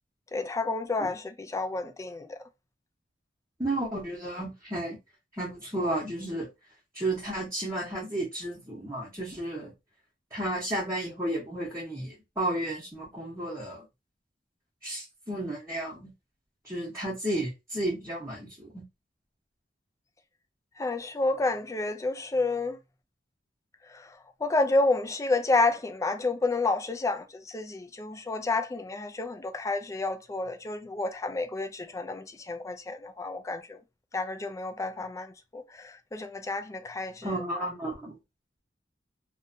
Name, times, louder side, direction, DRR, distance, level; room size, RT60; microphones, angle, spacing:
voice 1, 0.3-2.4 20.8-22.8 23.9-24.1 24.4-33.8 34.1-37.4, left 3 dB, 15° left, 0.3 m, -30 dB
voice 2, 3.6-5.0 5.4-6.5 6.9-9.7 10.3-13.8 14.8-16.1 16.6-18.8 37.2-38.1, right 1 dB, 15° right, 0.8 m, -32 dB
2.6 x 2.2 x 2.5 m
head